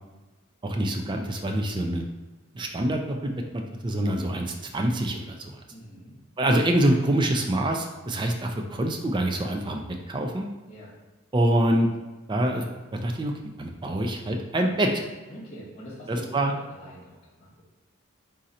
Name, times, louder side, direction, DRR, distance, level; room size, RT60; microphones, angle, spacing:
voice 1, 0.6-2.0 2.5-5.6 6.4-9.8 10.1-10.5 11.3-11.9 12.3-13.3 13.6-15.0 16.1-16.5, right 1 dB, 20° right, 2 dB, 0.4 m, -25 dB
voice 2, 5.7-6.2 10.7-10.9 15.3-17.6, equal, 30° left, -8 dB, 0.9 m, -44 dB
3.8 x 2.7 x 4.1 m, 1.2 s
head